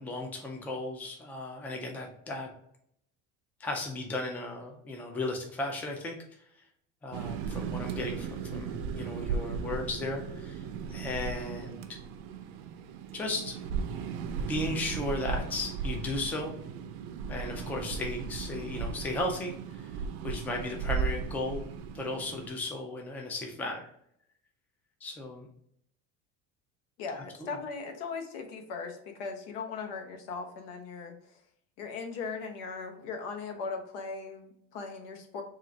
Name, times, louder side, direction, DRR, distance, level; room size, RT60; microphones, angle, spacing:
voice 1, 0.0-2.5 3.6-6.2 7.0-12.0 13.1-13.6 14.4-16.5 17.3-19.9 20.2-21.7 21.9-23.9 25.0-25.5, left 2 dB, 5° left, 1 dB, 0.3 m, -35 dB
sound 1, 7.1-22.5, right 6 dB, 85° right, 0.6 m, -36 dB
voice 2, 27.0-31.4 31.8-35.4, left 4 dB, 85° left, 4 dB, 0.9 m, -39 dB
3.8 x 2.4 x 4.4 m, 0.71 s
cardioid pair, 170°, 32 cm